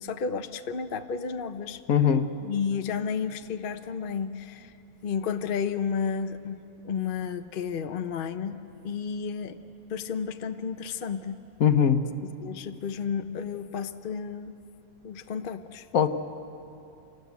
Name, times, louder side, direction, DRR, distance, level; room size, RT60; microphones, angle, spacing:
voice 1, 0.0-1.8 2.4-4.7 5.0-6.6 6.8-8.6 8.8-9.6 9.9-11.4 12.4-14.5 15.0-15.9, left 6 dB, 45° left, 8 dB, 0.8 m, -32 dB
voice 2, 1.9-2.3 11.6-12.0 15.9-16.1, left 8 dB, 65° left, 9 dB, 1.3 m, -20 dB
27.5 x 18.5 x 8.3 m, 2.8 s
omnidirectional pair, 1.6 m